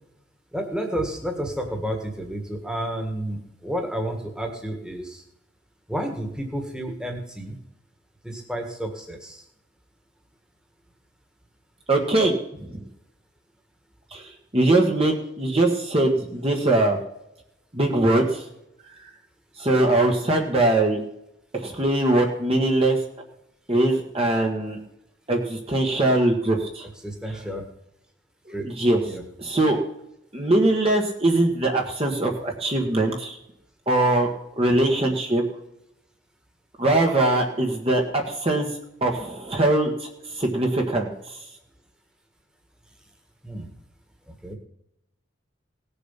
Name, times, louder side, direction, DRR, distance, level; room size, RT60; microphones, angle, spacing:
voice 1, 0.5-5.2 5.9-7.6 8.2-9.4 27.0-27.7 28.5-28.6 29.1-29.2 34.7-34.8 43.4-43.7 44.4-44.5, right 1 dB, 5° right, 3 dB, 1.7 m, -31 dB
voice 2, 11.9-12.3 14.1-14.2 14.5-17.0 17.7-18.4 19.6-21.0 21.6-23.0 23.7-24.8 25.3-26.8 28.6-29.0 29.4-29.8 30.3-33.4 33.9-34.3 34.6-35.4 36.8-38.7 39.0-40.1 40.4-41.1, right 2 dB, 30° right, 2 dB, 1.5 m, -21 dB
18.0 x 7.1 x 5.8 m, 0.81 s
head